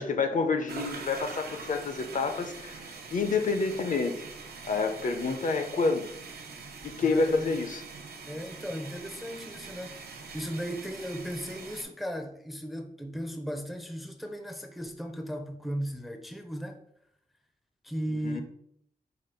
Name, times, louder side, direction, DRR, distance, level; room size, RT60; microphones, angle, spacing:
voice 1, 0.0-4.1 4.6-6.1 6.8-7.8 18.2-18.4, left 4 dB, 55° left, 7 dB, 0.5 m, -28 dB
sound 1, 0.7-11.8, right 4 dB, 85° right, 0.6 m, -43 dB
voice 2, 7.0-7.5 8.3-9.9 10.3-16.8 17.8-18.4, equal, ahead, 5 dB, 0.4 m, -36 dB
4.9 x 2.2 x 4.3 m, 0.71 s
wide cardioid pair, 150°, 16 cm